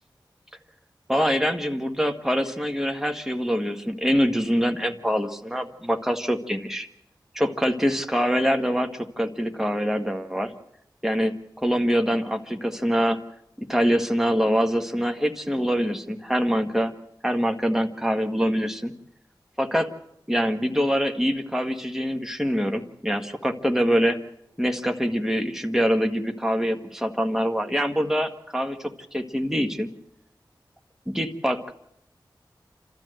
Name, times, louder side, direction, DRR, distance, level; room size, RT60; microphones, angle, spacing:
voice 1, 1.1-6.9 7.3-10.5 11.0-13.2 13.6-16.9 17.2-18.9 19.6-19.9 20.3-24.2 24.6-29.9 31.1-31.7, equal, 5° right, 5 dB, 1.5 m, -24 dB
29.0 x 13.5 x 7.9 m, 0.80 s
wide cardioid pair, 80°, 8 cm